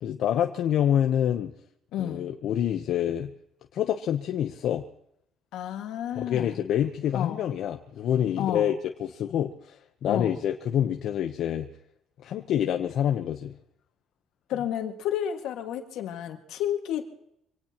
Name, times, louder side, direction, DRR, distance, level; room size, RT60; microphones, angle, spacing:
voice 1, 0.0-1.5 2.0-3.3 3.7-4.8 6.1-11.7 12.2-13.5, left 10 dB, 60° left, 5 dB, 0.9 m, -27 dB
voice 2, 1.9-2.3 5.5-6.6 7.1-7.4 8.4-8.7 10.1-10.4 14.5-17.0, left 10 dB, 80° left, 4 dB, 2.0 m, -31 dB
25.5 x 18.5 x 3.0 m, 0.75 s
cardioid pair, 125°, 0 cm